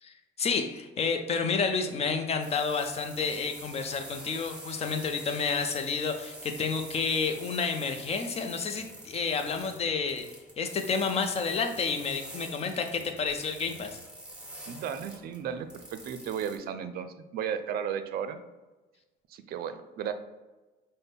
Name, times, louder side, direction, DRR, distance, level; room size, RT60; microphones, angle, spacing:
voice 1, 0.0-10.3 10.6-14.0, left 5 dB, 35° left, 6 dB, 0.6 m, -30 dB
sound 1, 2.4-16.6, right 1 dB, 5° right, 1.0 m, -46 dB
voice 2, 14.7-18.4 19.3-20.1, right 8 dB, 65° right, 10 dB, 0.5 m, -34 dB
5.6 x 2.1 x 3.5 m, 1.2 s
cardioid pair, 110°, 17 cm